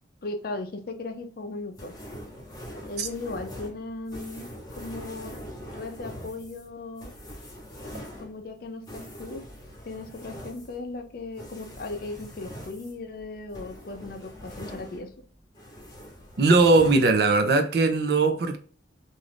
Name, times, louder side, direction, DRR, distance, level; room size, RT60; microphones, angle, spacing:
voice 1, 0.2-1.9 2.9-4.5 4.8-5.4 5.7-7.1 8.2-9.5 9.8-15.1, left 2 dB, 55° left, 0.5 m, -37 dB
sound 1, 1.8-15.3 15.5-17.1, equal, 20° left, 0.9 m, -43 dB
voice 2, 16.4-18.6, right 3 dB, 60° right, 0.5 m, -20 dB
2.5 x 2.4 x 3.3 m
head